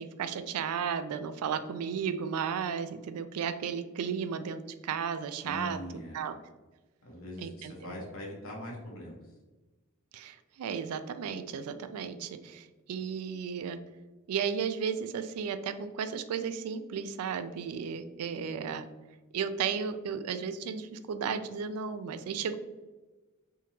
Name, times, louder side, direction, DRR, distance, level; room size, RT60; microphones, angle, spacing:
voice 1, 0.0-5.8 6.1-6.3 7.4-7.9 10.1-13.8 14.3-18.8 19.3-22.6, right 6 dB, 85° right, 10 dB, 0.3 m, -34 dB
voice 2, 5.4-6.2 7.0-9.2, equal, 65° left, -2 dB, 1.1 m, -42 dB
3.5 x 2.8 x 2.8 m, 1.2 s
head